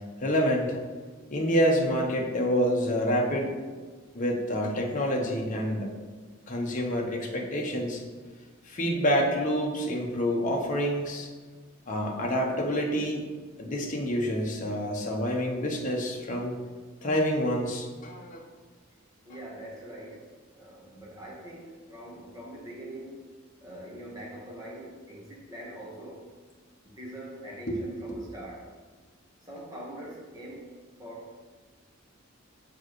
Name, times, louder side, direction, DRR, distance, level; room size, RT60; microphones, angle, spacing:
voice 1, 0.2-0.8 1.3-3.5 4.1-5.9 6.5-8.0 8.7-11.3 11.9-13.3 13.6-16.6 17.0-18.4 27.7-28.2, equal, 40° left, 0 dB, 1.0 m, -27 dB
voice 2, 19.2-20.2 20.5-23.2 23.6-26.2 26.8-28.7 29.4-30.7 31.0-31.3, right 1 dB, 20° right, -4 dB, 1.3 m, -43 dB
7.6 x 4.6 x 3.2 m, 1.5 s
head